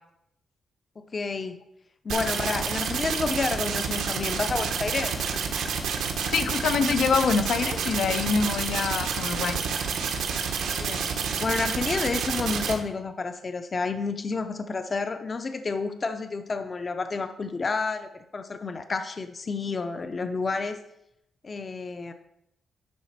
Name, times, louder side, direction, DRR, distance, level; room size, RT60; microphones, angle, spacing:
voice 1, 1.0-1.6 2.0-5.2 10.7-11.1 11.4-20.8 21.4-22.1, left 4 dB, 30° left, 8 dB, 0.6 m, -30 dB
sound 1, 2.1-12.7, right 6 dB, 90° right, 1.2 m, -29 dB
voice 2, 6.3-9.6, left 5 dB, 70° left, 9 dB, 0.7 m, -25 dB
10.5 x 4.0 x 5.8 m, 0.80 s
cardioid pair, 135°, 0 cm